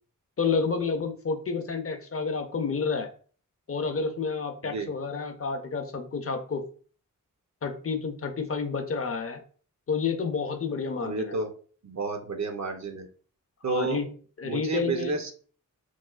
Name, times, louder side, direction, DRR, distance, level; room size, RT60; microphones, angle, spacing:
voice 1, 0.4-3.1 3.7-6.6 7.6-9.4 9.9-11.4 13.7-15.2, left 5 dB, 45° left, 7 dB, 0.5 m, -30 dB
voice 2, 11.0-11.5 11.8-13.1 13.6-14.0 14.4-15.3, right 4 dB, 55° right, 6 dB, 0.6 m, -31 dB
3.0 x 2.9 x 2.3 m, 0.42 s
wide cardioid pair, 90°, 33 cm